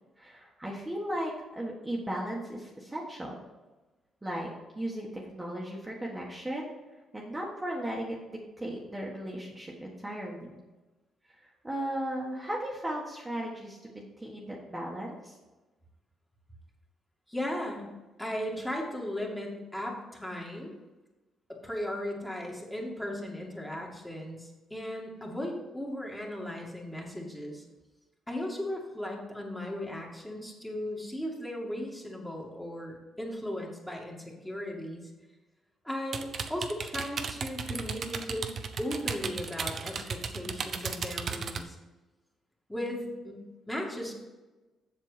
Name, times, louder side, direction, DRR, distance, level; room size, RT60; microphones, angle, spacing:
voice 1, 0.2-3.4 4.2-4.5 4.7-6.7 7.1-10.6 11.4-15.3, right 1 dB, 15° right, -3 dB, 1.6 m, -36 dB
voice 2, 17.3-17.9 18.2-20.7 21.5-27.6 28.3-35.0 35.8-38.5 38.8-41.8 42.7-44.1, left 1 dB, 10° left, -2 dB, 2.2 m, -36 dB
sound 1, 36.1-41.6, right 5 dB, 55° right, 0.8 m, -35 dB
7.6 x 6.7 x 5.1 m, 1.1 s
cardioid pair, 90°, 0 cm